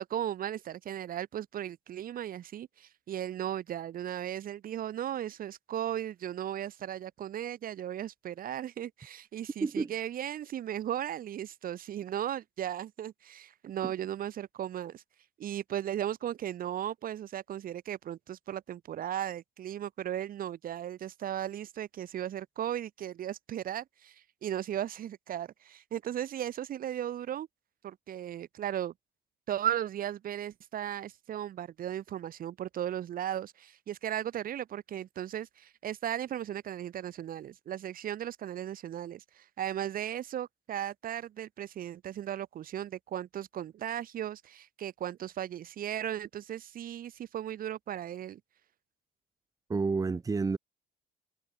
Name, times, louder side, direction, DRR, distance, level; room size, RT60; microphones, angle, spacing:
voice 1, 0.0-15.0 15.4-27.5 27.8-28.9 29.5-48.4, right 11 dB, 60° right, 3.7 m, -36 dB
voice 2, 49.7-50.6, right 4 dB, 20° right, 1.0 m, -29 dB
cardioid pair, 110°, 17 cm